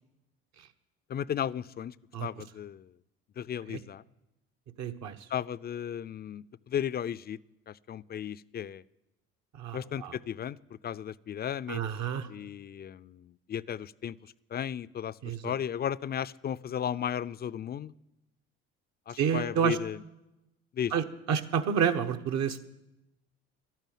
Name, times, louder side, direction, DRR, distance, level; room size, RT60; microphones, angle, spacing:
voice 1, 1.1-1.9 2.2-2.9 3.4-4.0 5.3-7.4 7.7-8.8 9.7-10.6 10.8-11.8 12.3-14.2 14.5-15.2 15.4-17.9 19.1-20.0 20.7-20.9, left 9 dB, 35° left, 17 dB, 0.4 m, -35 dB
voice 2, 4.8-5.2 9.6-10.2 11.7-12.3 15.2-15.5 19.2-19.8 20.9-22.6, right 7 dB, 60° right, 7 dB, 1.2 m, -29 dB
12.0 x 9.2 x 9.3 m, 0.93 s
supercardioid pair, 75°, 30 cm